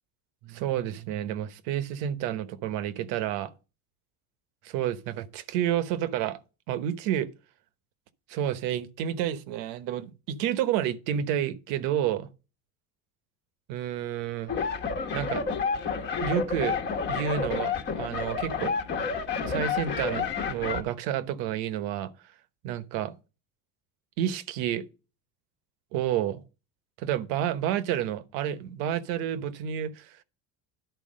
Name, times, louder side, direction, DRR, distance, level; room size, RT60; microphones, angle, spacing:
voice 1, 0.4-3.5 4.6-6.4 6.7-7.3 8.3-12.3 13.7-14.5 15.1-15.5 16.2-16.8 17.1-18.8 19.4-22.1 22.6-23.1 24.2-24.8 25.9-26.4 27.0-30.2, right 10 dB, 65° right, 1.1 m, -30 dB
sound 1, 14.5-20.8, left 5 dB, 30° left, 1.3 m, -30 dB
11.5 x 4.7 x 6.3 m
cardioid pair, 175°, 35 cm